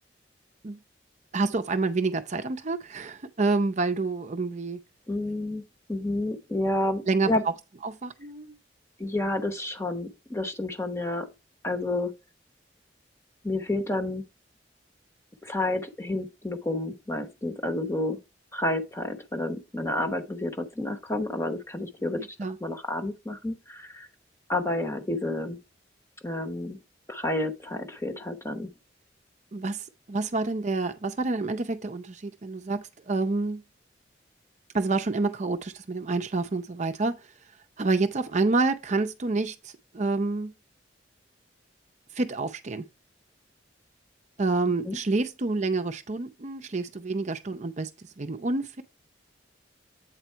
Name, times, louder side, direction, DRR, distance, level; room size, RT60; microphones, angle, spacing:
voice 1, 1.3-4.8 7.1-7.3 7.8-8.6 22.2-22.6 29.5-33.6 34.7-37.3 37.8-40.5 42.1-42.9 44.4-47.9 48.2-48.8, right 3 dB, 40° right, 0.5 m, -28 dB
voice 2, 5.1-5.6 5.9-7.4 9.0-11.3 11.6-12.1 13.4-14.2 15.4-18.2 18.5-24.1 24.5-25.6 26.2-26.8 27.1-28.7 44.8-45.0, left 2 dB, 15° left, 0.9 m, -30 dB
8.3 x 4.0 x 4.4 m
head